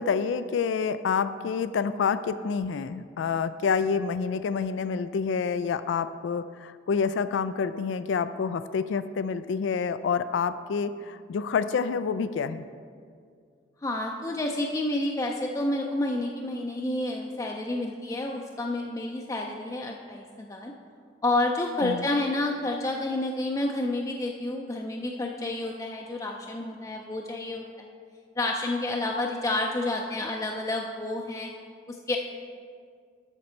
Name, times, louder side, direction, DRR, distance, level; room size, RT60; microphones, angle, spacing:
voice 1, 0.0-12.6 21.8-22.1, left 6 dB, 90° left, 13 dB, 0.3 m, -28 dB
voice 2, 13.8-20.7 21.2-27.9 28.4-31.5 31.9-32.2, left 2 dB, 20° left, 1 dB, 0.4 m, -29 dB
12.5 x 5.2 x 4.4 m, 2.1 s
head